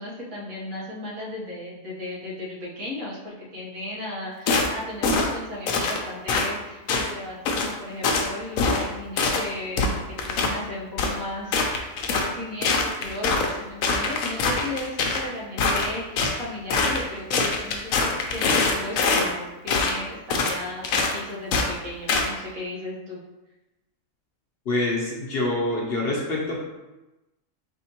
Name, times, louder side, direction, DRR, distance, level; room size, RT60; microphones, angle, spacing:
voice 1, 0.0-11.8 12.1-23.2, left 1 dB, 80° right, -6 dB, 1.7 m, -35 dB
sound 1, 4.5-4.7 5.0-5.3 5.7-6.0 6.3-6.5 6.9-7.1 7.5-7.7 8.0-8.3 8.6-8.9 9.2-9.4 9.8-10.5 11.0-11.1 11.5-12.3 12.6-13.5 13.8-15.2 15.6-16.4 16.7-17.0 17.3-19.3 19.7-20.0 20.3-20.6 20.8-21.1 21.5-21.7 22.1-22.3, left 3 dB, 80° left, 1.0 m, -23 dB
voice 2, 24.7-26.6, left 2 dB, 50° left, -3 dB, 1.0 m, -26 dB
4.7 x 3.5 x 2.9 m, 1.0 s
omnidirectional pair, 1.4 m